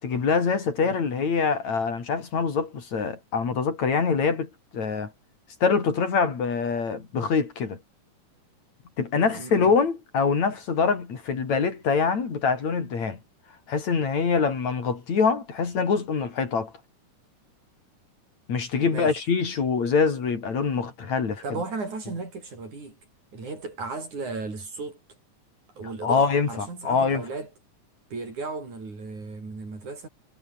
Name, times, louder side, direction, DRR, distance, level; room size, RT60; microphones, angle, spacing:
voice 1, 0.0-5.1 5.6-7.8 9.0-13.2 13.7-16.7 18.5-21.6 26.0-27.2, left 5 dB, 60° left, 4.9 m, -24 dB
voice 2, 9.1-9.7 18.9-19.2 21.4-23.0 23.3-25.0 25.8-27.5 28.1-30.1, right 3 dB, 65° right, 8.6 m, -35 dB
omnidirectional pair, 3.7 m